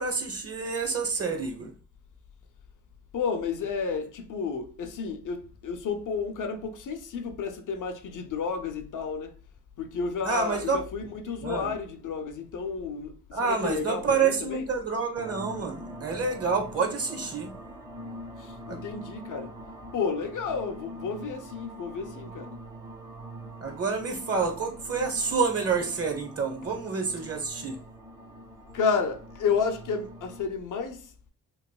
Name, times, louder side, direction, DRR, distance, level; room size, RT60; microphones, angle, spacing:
voice 1, 0.0-1.7 10.2-10.8 11.4-11.7 13.3-17.5 18.7-18.8 23.6-27.8, right 5 dB, 40° right, 0.9 m, -28 dB
voice 2, 3.1-9.4 9.8-14.6 18.4-19.5 19.9-22.6 28.7-31.1, left 5 dB, 55° left, 0.6 m, -31 dB
sound 1, 15.1-30.5, right 1 dB, 10° right, 0.6 m, -44 dB
3.0 x 2.6 x 2.2 m
hypercardioid pair, 45°, 38 cm